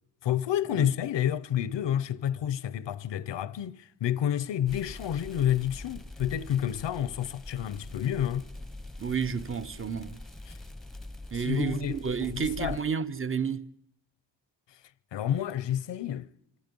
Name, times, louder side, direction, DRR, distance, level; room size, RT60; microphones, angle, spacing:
voice 1, 0.2-8.5 10.5-10.6 11.4-12.8 15.1-16.3, left 10 dB, 85° left, 0.8 m, -29 dB
sound 1, 4.7-12.8, left 1 dB, ahead, 0.8 m, -43 dB
voice 2, 9.0-10.2 11.3-13.7, right 6 dB, 30° right, 0.8 m, -31 dB
26.0 x 25.5 x 5.4 m
wide cardioid pair, 130°, 42 cm